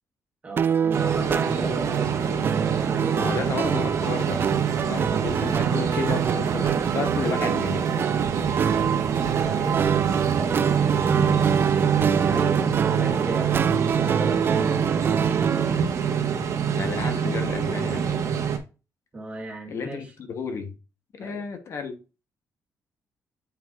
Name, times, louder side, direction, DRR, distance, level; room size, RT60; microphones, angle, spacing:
voice 1, 0.4-2.4 2.8-3.5 8.7-10.6 12.1-13.6 13.9-14.7 19.1-20.1 21.2-21.4, right 2 dB, 20° right, 1.8 m, -36 dB
sound 1, 0.6-15.8, right 7 dB, 40° right, 0.3 m, -27 dB
sound 2, 0.9-18.6, right 7 dB, 60° right, 1.3 m, -25 dB
voice 2, 3.2-4.5 4.8-7.8 16.7-18.1 19.7-20.7 21.1-22.0, left 5 dB, 50° left, 1.0 m, -32 dB
sound 3, 4.2-10.5, right 10 dB, 75° right, 0.6 m, -35 dB
8.3 x 4.6 x 2.5 m
cardioid pair, 140°, 6 cm